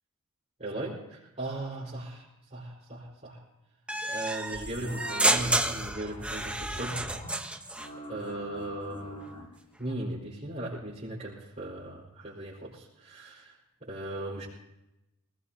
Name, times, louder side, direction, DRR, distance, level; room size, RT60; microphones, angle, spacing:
voice 1, 0.6-3.4 4.1-7.2 8.1-9.2 9.8-13.6 13.9-14.5, right 1 dB, 35° right, -7 dB, 4.6 m, -37 dB
sound 1, 3.9-7.9, right 2 dB, 5° right, 1.0 m, -30 dB
sound 2, 4.5-7.5 7.8-9.5 9.9-10.0, equal, 30° left, 5.8 m, -43 dB
26.5 x 19.0 x 2.9 m, 0.91 s
head